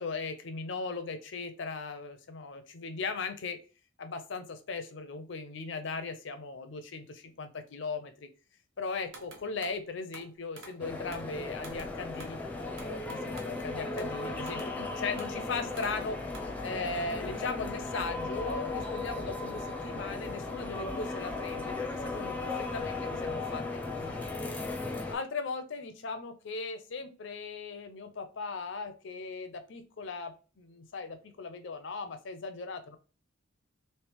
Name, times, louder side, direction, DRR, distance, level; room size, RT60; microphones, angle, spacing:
voice 1, 0.0-3.6 4.0-8.3 8.8-16.2 16.6-23.0 23.2-24.7 25.1-33.0, left 4 dB, 70° left, 9 dB, 0.6 m, -38 dB
sound 1, 9.1-9.8 10.1-10.8 11.1-11.3 11.6-12.4 12.8-13.6 14.0-14.2 14.5-14.8 15.2-15.4 15.8-16.0 16.3-16.6, right 3 dB, 75° right, 0.8 m, -50 dB
sound 2, 10.8-25.2, left 3 dB, 10° left, 0.6 m, -36 dB
3.2 x 2.8 x 3.3 m, 0.35 s
head